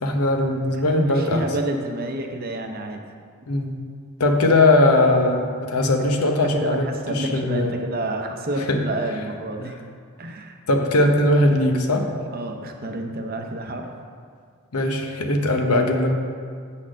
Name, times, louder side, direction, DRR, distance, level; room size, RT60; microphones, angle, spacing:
voice 1, 0.0-1.5 3.5-3.8 4.2-7.8 8.7-8.8 10.7-12.1 14.7-16.1, left 2 dB, 90° left, 3 dB, 0.9 m, -20 dB
voice 2, 0.8-3.0 6.6-9.7 10.2-10.6 12.3-13.9, right 1 dB, 40° right, 4 dB, 0.7 m, -29 dB
7.9 x 4.3 x 6.2 m, 2.1 s
head